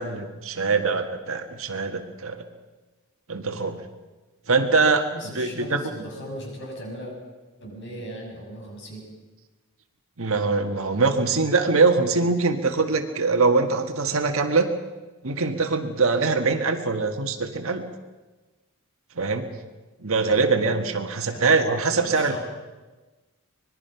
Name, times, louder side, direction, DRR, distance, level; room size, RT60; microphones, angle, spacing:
voice 1, 0.0-2.4 3.3-3.8 4.5-5.8 10.2-14.7 15.2-17.8 19.2-19.5 20.0-22.4, right 4 dB, 65° right, 5 dB, 1.6 m, -23 dB
voice 2, 5.1-7.1 7.6-9.1 21.3-21.6 22.0-22.4, equal, 55° left, 0 dB, 7.0 m, -38 dB
25.5 x 20.0 x 5.8 m, 1.2 s
head